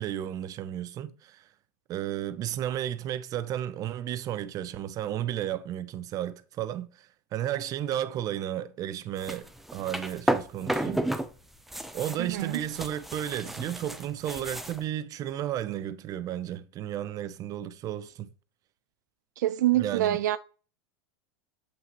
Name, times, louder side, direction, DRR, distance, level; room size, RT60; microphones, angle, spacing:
voice 1, 0.0-1.4 1.9-11.0 11.9-18.3 19.8-20.2, right 11 dB, 40° right, 0.7 m, -33 dB
sound 1, 9.2-11.3 11.5-14.8, right 1 dB, ahead, 0.7 m, -32 dB
voice 2, 12.2-12.6 19.4-20.4, right 14 dB, 80° right, 0.4 m, -26 dB
7.6 x 5.7 x 3.0 m
hypercardioid pair, 105°, 9 cm